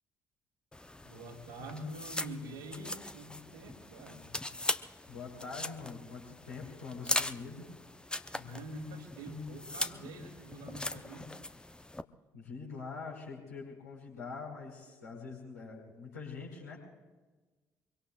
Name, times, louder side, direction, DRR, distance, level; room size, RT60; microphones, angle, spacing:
sound 1, 0.7-12.0, left 2 dB, 10° left, 0.8 m, -40 dB
voice 1, 1.0-4.2 8.3-11.3, equal, 75° right, -6 dB, 2.5 m, -45 dB
voice 2, 5.1-7.7 12.3-16.8, left 4 dB, 80° left, -3 dB, 5.2 m, -44 dB
24.5 x 24.0 x 2.5 m, 1.3 s
figure-of-eight pair, 50°, 9 cm